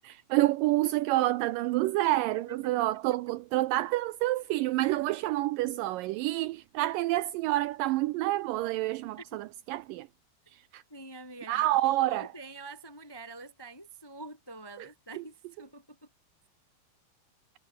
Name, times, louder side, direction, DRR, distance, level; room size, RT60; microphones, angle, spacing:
voice 1, 0.3-10.1 10.7-10.8 11.5-12.3 14.8-14.9 15.2-15.3, right 16 dB, 80° right, 2.0 m, -28 dB
voice 2, 2.3-2.7 9.2-9.3 10.9-16.1, right 2 dB, 15° left, 1.0 m, -46 dB
omnidirectional pair, 4.3 m